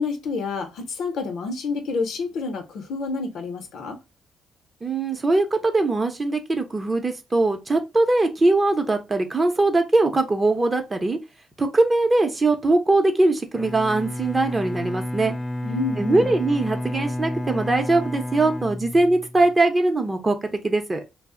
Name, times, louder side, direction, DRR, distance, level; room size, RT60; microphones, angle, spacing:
voice 1, 0.0-4.0 15.6-16.3, left 4 dB, 75° left, 0.6 m, -28 dB
voice 2, 4.8-11.2 11.6-15.3 16.0-21.0, right 2 dB, 25° right, 0.6 m, -21 dB
Bowed string instrument, 13.5-19.6, left 1 dB, 15° left, 0.3 m, -31 dB
2.4 x 2.0 x 3.5 m
cardioid pair, 80°, 0 cm